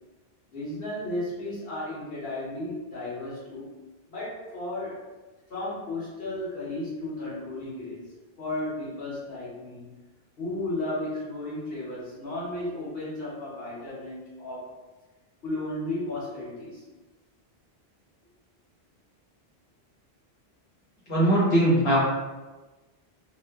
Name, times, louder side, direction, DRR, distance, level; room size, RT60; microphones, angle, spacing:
voice 1, 0.5-3.7 4.1-5.0 5.5-8.0 8.4-9.9 10.4-14.7 15.4-16.8, left 1 dB, 65° left, -8 dB, 1.1 m, -34 dB
voice 2, 21.1-22.0, right 1 dB, 30° left, -8 dB, 0.9 m, -20 dB
2.9 x 2.1 x 2.2 m, 1.2 s
omnidirectional pair, 1.1 m